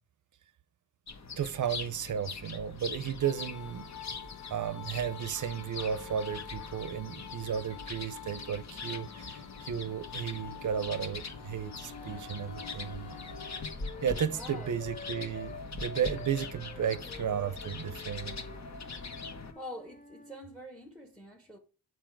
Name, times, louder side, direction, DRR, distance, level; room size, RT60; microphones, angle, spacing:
sound 1, 1.1-19.5, left 4 dB, 45° left, 1.1 m, -42 dB
voice 1, 1.4-3.9 4.5-13.2 14.0-18.4, right 8 dB, 50° right, 0.7 m, -34 dB
sound 2, 3.2-13.6, left 7 dB, 80° left, 1.0 m, -48 dB
Wind instrument woodwind instrument, 11.7-15.6 16.0-20.4, left 4 dB, 20° left, 0.5 m, -50 dB
voice 2, 14.3-14.8 19.5-21.6, left 1 dB, ahead, 0.9 m, -45 dB
7.7 x 4.7 x 4.6 m
wide cardioid pair, 125°, 38 cm